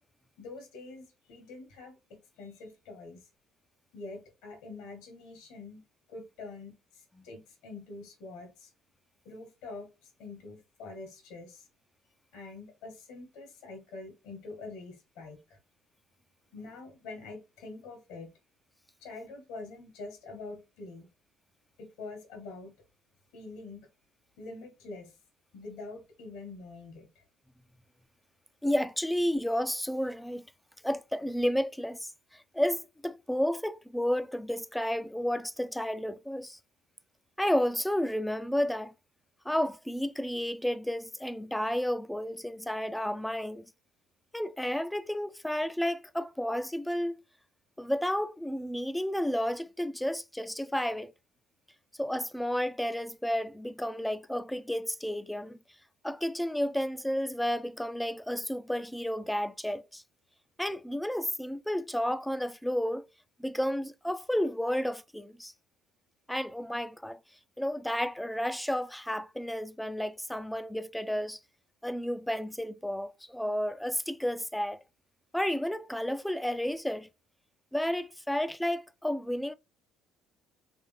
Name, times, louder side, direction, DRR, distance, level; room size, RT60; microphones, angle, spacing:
voice 1, 0.4-3.2 3.9-6.8 7.2-8.7 9.2-11.7 12.3-15.4 16.5-18.3 19.0-21.1 21.8-22.7 23.3-23.9 24.4-25.1 25.5-27.2, left 3 dB, 80° left, 1.5 m, -45 dB
voice 2, 28.6-30.4 30.8-32.0 32.5-36.6 37.4-38.9 39.5-43.6 44.3-47.2 47.8-51.1 52.0-55.6 56.0-60.0 60.6-63.0 63.4-65.5 66.3-67.2 67.6-71.4 71.8-74.8 75.3-77.1 77.7-79.5, equal, 5° left, 0.4 m, -31 dB
3.3 x 3.2 x 3.3 m
supercardioid pair, 75°, 0 cm